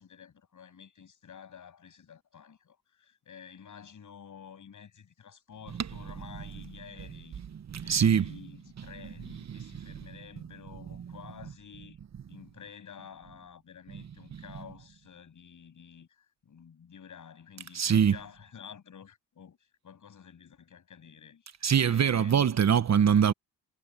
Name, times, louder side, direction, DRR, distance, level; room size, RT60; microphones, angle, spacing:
voice 1, 0.0-7.4 7.8-12.0 12.3-19.6 19.8-21.5 21.8-22.6, left 7 dB, 50° left, 7.3 m, -50 dB
voice 2, 5.8-6.4 7.5-8.4 8.8-10.0 11.0-11.1 13.9-14.0 14.5-14.6 17.7-18.2 21.6-23.3, right 8 dB, 40° right, 1.3 m, -26 dB
supercardioid pair, 60°, 40 cm